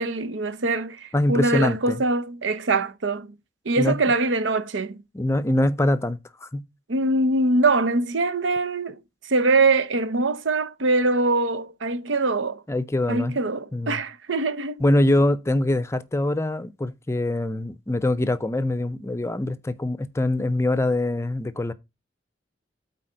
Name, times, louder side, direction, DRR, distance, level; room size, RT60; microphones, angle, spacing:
voice 1, 0.0-3.3 3.6-5.0 6.9-9.0 9.3-12.6 13.1-14.8, right 3 dB, 90° right, 0.8 m, -23 dB
voice 2, 1.1-2.0 3.8-4.0 5.1-6.6 12.7-13.4 13.7-14.0 14.8-21.7, left 1 dB, 15° left, 0.5 m, -23 dB
8.6 x 4.2 x 5.0 m
head